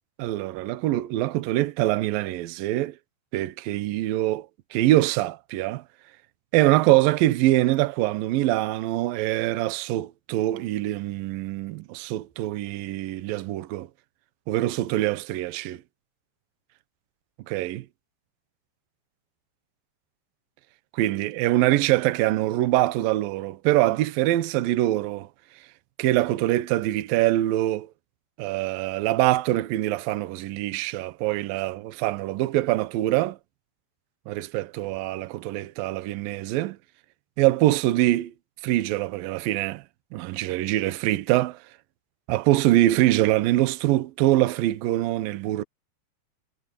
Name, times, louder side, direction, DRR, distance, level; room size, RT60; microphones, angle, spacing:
voice 1, 0.2-2.9 3.3-4.5 4.7-5.8 6.5-13.9 14.5-15.8 17.5-17.9 20.9-25.3 26.0-27.9 28.4-33.4 34.3-36.8 37.4-38.3 38.6-39.8 40.1-41.6 42.3-45.6, right 16 dB, 70° right, 2.3 m, -24 dB
omnidirectional pair, 5.1 m